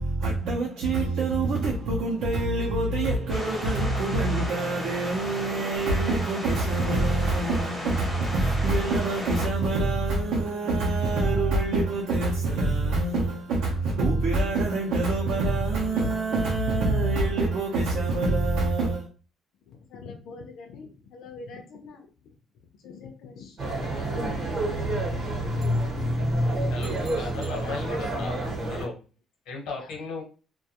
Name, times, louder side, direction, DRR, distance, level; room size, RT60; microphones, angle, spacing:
voice 1, 0.0-19.1, right 2 dB, 70° right, 0.5 m, -25 dB
sound 1, 3.3-9.5, left 1 dB, 5° right, 0.6 m, -35 dB
voice 2, 19.7-22.3 22.8-23.9 29.8-30.0, left 4 dB, 60° left, 0.4 m, -45 dB
sound 2, 23.6-28.8, right 1 dB, 45° right, 0.8 m, -28 dB
voice 3, 26.7-28.3 28.7-29.0 29.5-30.2, left 3 dB, 85° left, 0.9 m, -35 dB
2.3 x 2.2 x 2.8 m
cardioid pair, 180°, 0 cm